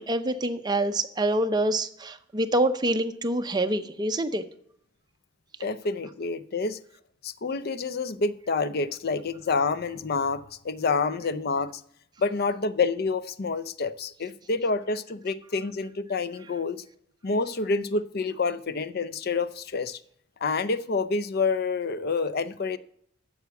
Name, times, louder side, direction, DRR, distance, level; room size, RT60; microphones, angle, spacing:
voice 1, 0.0-4.4, right 1 dB, 20° right, 0.7 m, -26 dB
voice 2, 5.6-6.8 7.2-11.7 12.2-16.8 17.2-20.0 20.4-22.8, left 4 dB, 55° left, 0.6 m, -28 dB
9.4 x 7.1 x 7.0 m
head